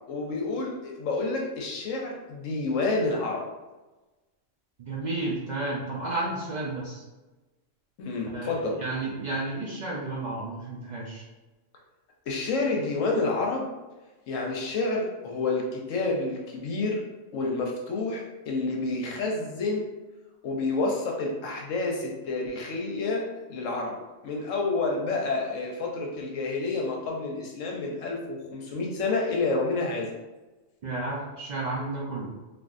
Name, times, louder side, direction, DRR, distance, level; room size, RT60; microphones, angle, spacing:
voice 1, 0.1-3.5 8.0-8.8 12.3-13.7 14.3-17.0 17.3-19.9 20.4-24.0 24.2-30.1, left 3 dB, 75° left, 0 dB, 1.0 m, -29 dB
voice 2, 4.8-7.0 8.3-11.2 30.8-32.3, right 2 dB, 65° right, -5 dB, 0.4 m, -32 dB
3.3 x 2.4 x 2.5 m, 1.1 s
omnidirectional pair, 1.3 m